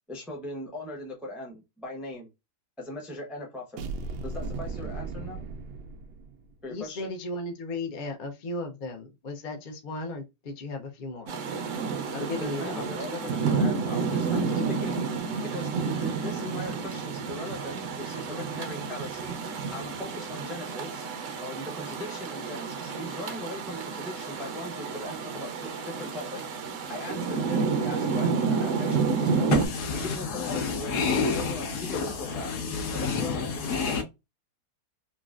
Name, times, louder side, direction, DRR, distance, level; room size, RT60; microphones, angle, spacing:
voice 1, 0.1-2.3 2.8-3.8 4.2-5.4 6.6-7.2 12.2-21.0 21.4-26.4 26.9-29.5 29.9-32.5 32.9-34.0, left 1 dB, ahead, 0.4 m, -39 dB
sound 1, 3.8-6.5, right 3 dB, 85° right, 1.2 m, -36 dB
voice 2, 6.7-11.3 12.1-12.8, left 2 dB, 60° left, 0.5 m, -35 dB
Rain, 11.3-29.7, right 5 dB, 65° right, 0.8 m, -30 dB
voice 3, 29.5-34.0, left 5 dB, 75° left, 1.5 m, -29 dB
3.8 x 2.2 x 2.4 m
omnidirectional pair, 1.8 m